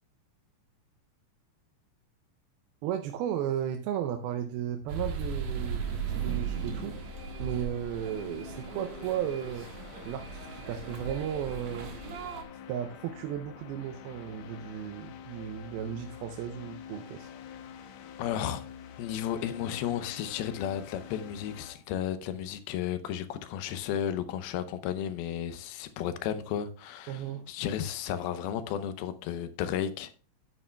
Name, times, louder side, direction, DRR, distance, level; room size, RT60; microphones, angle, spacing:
voice 1, 2.8-7.0 7.4-9.7 10.1-12.0 12.7-17.3 27.1-27.5, right 10 dB, 85° right, 2.5 m, -35 dB
sound 1, 4.7-21.8, left 8 dB, 70° left, 2.1 m, -47 dB
sound 2, 4.9-12.4, right 6 dB, 60° right, 2.4 m, -37 dB
voice 2, 18.2-18.6 19.0-30.1, left 10 dB, 90° left, 2.7 m, -33 dB
11.0 x 8.8 x 2.2 m
omnidirectional pair, 4.3 m